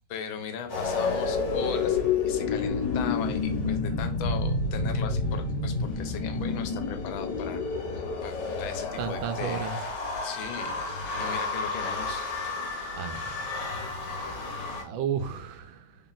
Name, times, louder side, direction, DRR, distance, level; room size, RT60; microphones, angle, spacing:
voice 1, 0.1-7.6 7.9-9.7 10.2-12.3, left 7 dB, 85° left, 7 dB, 1.5 m, -38 dB
sound 1, 0.7-14.8, left 4 dB, 65° left, 1.5 m, -30 dB
voice 2, 9.0-9.8 12.9-13.4 13.8-16.0, right 8 dB, 85° right, 8 dB, 1.4 m, -34 dB
4.0 x 3.6 x 2.4 m, 0.38 s
omnidirectional pair, 2.1 m